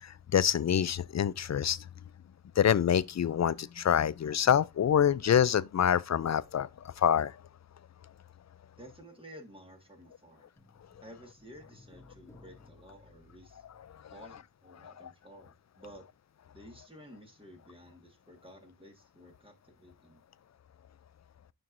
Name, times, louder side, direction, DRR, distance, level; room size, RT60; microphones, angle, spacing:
voice 1, 0.0-1.8 2.6-7.4 14.0-14.1 14.8-15.1, left 9 dB, 45° left, 0.4 m, -26 dB
voice 2, 8.8-10.5 11.0-13.6 14.1-16.0 16.5-20.2, equal, 15° right, 1.8 m, -53 dB
sound 1, 10.6-15.0 15.3-15.4, left 3 dB, 5° left, 1.7 m, -59 dB
11.0 x 4.5 x 2.6 m
cardioid pair, 55°, 37 cm